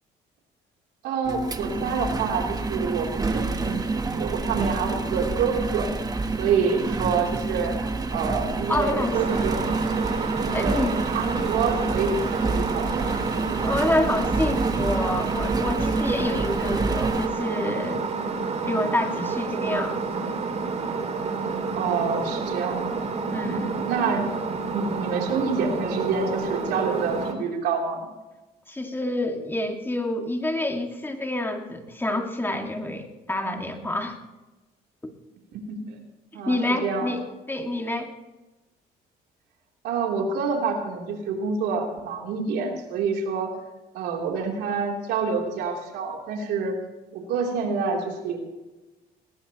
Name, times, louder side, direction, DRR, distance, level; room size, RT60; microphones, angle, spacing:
voice 1, 1.0-5.9 6.4-9.6 10.6-13.5 21.7-23.0 23.2-24.3 24.7-28.1 35.5-36.0 36.3-37.1 39.8-43.5 43.9-46.8 47.1-48.4, right 5 dB, 80° right, 0 dB, 3.4 m, -27 dB
Engine, 1.2-17.3, right 3 dB, 20° right, 1.2 m, -28 dB
voice 2, 8.7-9.2 10.5-10.9 11.3-11.5 13.6-18.0 18.7-20.4 23.3-23.8 28.7-34.1 35.0-35.1 36.5-37.2 37.5-38.1, left 1 dB, 10° left, 3 dB, 2.1 m, -28 dB
sound 1, 9.1-27.3, right 4 dB, 40° right, 2.6 m, -29 dB
19.5 x 19.0 x 3.1 m, 1.1 s
cardioid pair, 95°, 17 cm